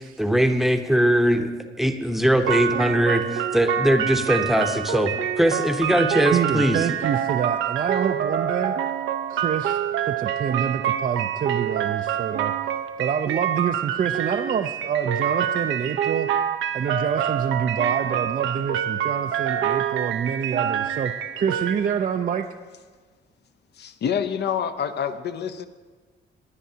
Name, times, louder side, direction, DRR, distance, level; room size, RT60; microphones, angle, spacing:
voice 1, 0.2-1.5 1.8-6.8, equal, ahead, 6 dB, 0.9 m, -21 dB
sound 1, 2.4-21.7, right 9 dB, 80° right, 0.7 m, -26 dB
voice 2, 6.3-8.8 9.3-12.5 13.0-16.3 16.7-22.5, right 7 dB, 45° right, 5 dB, 0.5 m, -27 dB
voice 3, 23.7-25.7, left 8 dB, 60° left, 10 dB, 0.8 m, -27 dB
19.5 x 9.9 x 2.8 m, 1.4 s
cardioid pair, 90°, 20 cm